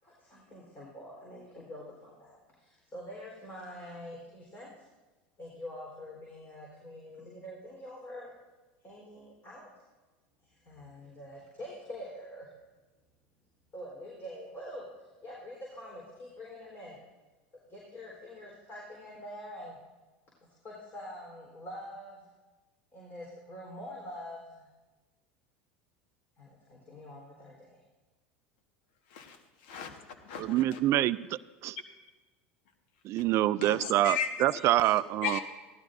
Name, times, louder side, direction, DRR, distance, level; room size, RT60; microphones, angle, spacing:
voice 1, 0.0-4.9 5.4-8.3 8.8-9.7 10.4-12.5 13.7-14.9 15.2-17.0 17.7-19.8 20.6-22.2 22.9-24.7 26.4-27.8, left 1 dB, 35° left, 3.9 m, -45 dB
voice 2, 29.6-30.8 33.6-34.3 34.6-35.4, left 8 dB, 70° left, 1.4 m, -36 dB
voice 3, 30.4-31.2 31.6-31.8 33.0-35.4, right 14 dB, 50° right, 0.3 m, -26 dB
16.5 x 12.5 x 2.6 m
hypercardioid pair, 90°, 6 cm